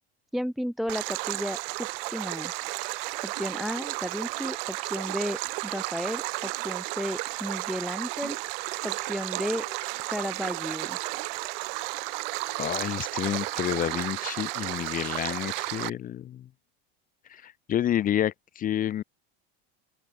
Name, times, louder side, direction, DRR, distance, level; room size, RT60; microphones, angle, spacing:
voice 1, 0.3-2.5 3.2-8.4 8.8-9.6 10.1-11.0, equal, ahead, 0.5 m, -33 dB
Stream, 0.9-15.9, right 32 dB, 65° right, 2.0 m, -33 dB
sound 1, 8.5-15.5, left 19 dB, 90° left, 7.5 m, -55 dB
voice 2, 12.6-16.5 17.3-19.0, left 11 dB, 25° left, 0.8 m, -29 dB
open air
supercardioid pair, 145°, 31 cm